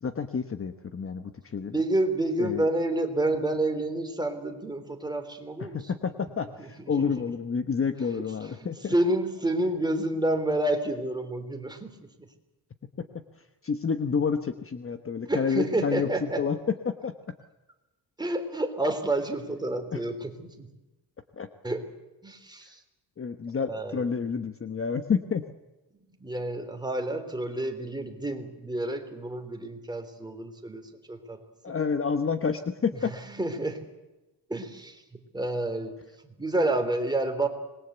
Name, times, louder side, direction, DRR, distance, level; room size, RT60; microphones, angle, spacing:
voice 1, 0.0-1.8 2.4-2.7 5.7-8.9 13.0-13.1 13.3-16.6 16.8-17.1 19.9-20.0 21.4-21.5 22.6-22.7 23.2-25.5 31.6-33.1, left 6 dB, 30° left, 9 dB, 1.1 m, -29 dB
voice 2, 1.7-5.8 7.0-7.1 8.1-12.0 15.3-16.4 18.2-20.7 21.6-21.9 22.2-22.8 23.7-24.0 26.2-31.4 31.7-31.8 33.1-33.8 34.5-36.0 36.4-37.5, right 1 dB, 10° right, 5 dB, 3.5 m, -29 dB
26.0 x 21.5 x 8.1 m, 1.1 s
cardioid pair, 130°, 42 cm